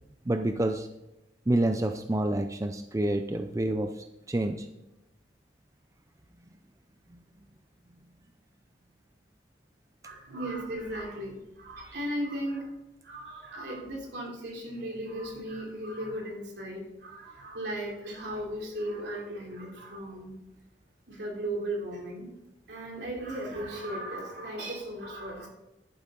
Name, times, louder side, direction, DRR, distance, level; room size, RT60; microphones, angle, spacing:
voice 1, 0.3-0.9 1.5-4.7, right 1 dB, 20° right, 6 dB, 0.5 m, -28 dB
voice 2, 10.0-12.7 13.0-20.3 21.1-22.4 22.7-25.5, right 1 dB, 70° right, -1 dB, 3.3 m, -36 dB
11.0 x 9.6 x 3.9 m, 0.93 s
head